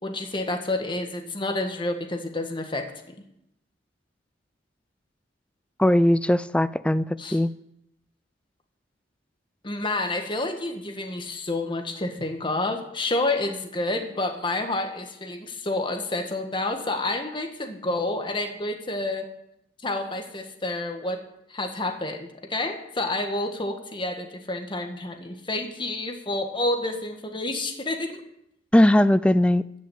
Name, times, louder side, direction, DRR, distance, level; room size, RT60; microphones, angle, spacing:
voice 1, 0.0-2.9 7.2-7.4 9.6-19.3 19.8-21.2 21.5-28.2, left 2 dB, 25° left, 1.7 m, -29 dB
voice 2, 5.8-7.5 28.7-29.7, left 1 dB, 5° left, 0.4 m, -19 dB
14.0 x 6.4 x 8.6 m
head